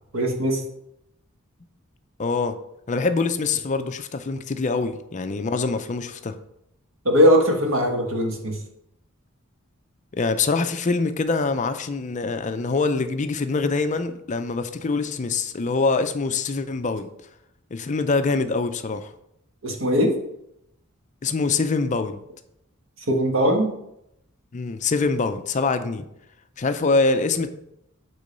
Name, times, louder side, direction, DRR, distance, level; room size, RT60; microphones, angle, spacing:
voice 1, 0.1-0.6 7.0-8.6 19.6-20.2 23.0-23.8, equal, 70° right, 2 dB, 1.4 m, -20 dB
voice 2, 2.2-2.5 2.9-6.3 10.1-17.1 17.7-19.1 21.2-22.2 24.5-26.1 26.6-27.5, left 4 dB, 35° left, 9 dB, 0.5 m, -24 dB
8.4 x 3.8 x 5.2 m, 0.79 s
head